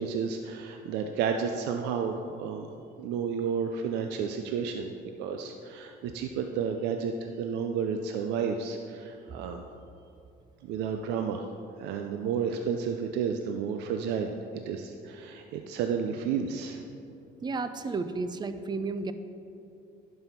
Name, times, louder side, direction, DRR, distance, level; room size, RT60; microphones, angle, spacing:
voice 1, 0.0-2.7 3.0-4.9 5.2-9.6 10.6-11.5 11.8-16.8, right 6 dB, 90° right, 5 dB, 0.6 m, -31 dB
voice 2, 17.4-19.1, right 3 dB, 25° right, 11 dB, 0.5 m, -32 dB
11.0 x 5.6 x 5.7 m, 2.7 s
cardioid pair, 110°, 17 cm